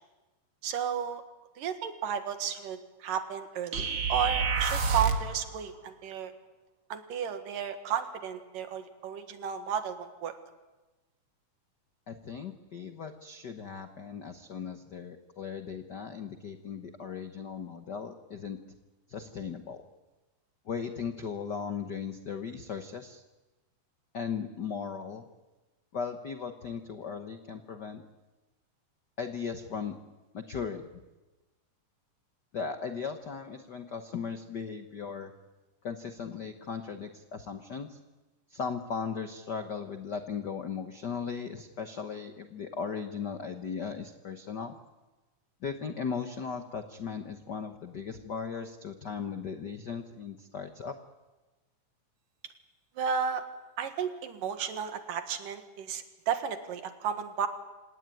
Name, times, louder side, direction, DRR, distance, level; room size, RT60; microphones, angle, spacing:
voice 1, 0.6-1.2 1.6-6.3 6.9-10.3 53.0-53.4 53.8-57.5, right 7 dB, 90° right, 8 dB, 3.3 m, -33 dB
sound 1, 3.7-5.3, right 5 dB, 45° right, 2.1 m, -28 dB
voice 2, 12.1-18.6 19.1-19.8 20.6-23.2 24.1-25.2 25.9-28.0 29.2-30.0 30.3-30.9 32.5-35.3 35.8-38.0 38.5-44.8 45.6-51.0, left 6 dB, 85° left, 7 dB, 0.9 m, -37 dB
27.0 x 18.5 x 9.3 m, 1.1 s
omnidirectional pair, 3.7 m